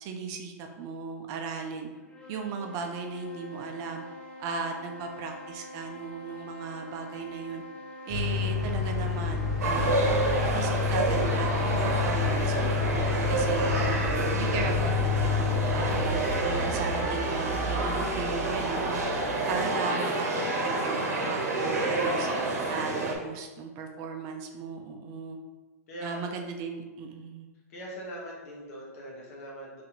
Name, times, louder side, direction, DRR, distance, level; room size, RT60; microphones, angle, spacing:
voice 1, 0.0-1.9 2.3-4.0 4.4-7.6 8.1-10.3 10.5-12.9 13.3-14.0 14.4-19.0 19.5-22.3 22.7-25.4 26.0-27.5, right 5 dB, 40° right, 3 dB, 0.6 m, -37 dB
sound 1, 1.9-12.2, left 1 dB, 15° left, 0.7 m, -45 dB
sound 2, 8.1-19.6, left 5 dB, 5° right, 1.2 m, -30 dB
sound 3, 9.6-23.2, right 2 dB, 75° right, 0.9 m, -29 dB
voice 2, 25.9-26.2 27.7-29.8, equal, 65° left, -3 dB, 1.4 m, -41 dB
3.3 x 2.8 x 4.0 m, 1.2 s
hypercardioid pair, 110°, 9 cm